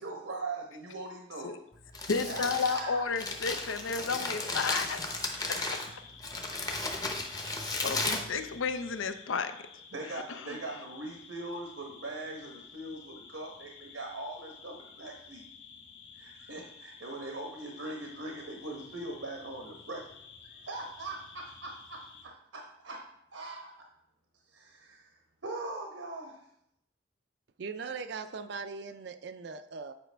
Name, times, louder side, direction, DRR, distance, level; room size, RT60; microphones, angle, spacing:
voice 1, 0.0-1.5 1.9-3.0 9.9-15.4 16.1-20.1 20.4-23.0 23.3-23.8 24.5-25.1 25.4-26.4, right 2 dB, 90° right, 0 dB, 1.0 m, -41 dB
Crumpling crinkling, 1.7-9.0, left 2 dB, 20° left, 0.7 m, -35 dB
voice 2, 2.1-5.0 5.5-5.6 7.4-7.5 7.8-9.6 10.4-10.6, left 5 dB, 90° left, 10 dB, 0.6 m, -32 dB
sound 1, 5.3-22.2, left 6 dB, 65° left, 1.1 m, -52 dB
voice 3, 27.6-29.9, right 4 dB, 60° right, 9 dB, 0.4 m, -39 dB
8.8 x 4.9 x 3.4 m, 0.77 s
head